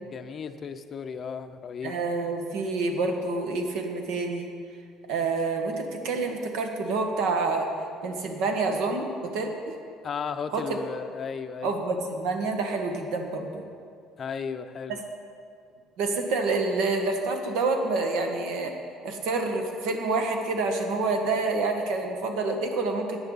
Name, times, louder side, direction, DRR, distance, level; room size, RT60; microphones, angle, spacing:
voice 1, 0.1-1.9 10.0-11.8 14.2-15.0, left 6 dB, 30° left, 9 dB, 0.6 m, -35 dB
voice 2, 1.8-4.5 5.1-7.7 8.0-9.7 10.5-10.8 11.6-13.6 16.0-18.7 19.0-23.2, right 3 dB, 75° right, 3 dB, 1.8 m, -28 dB
17.5 x 10.5 x 4.1 m, 2.2 s
cardioid pair, 155°, 0 cm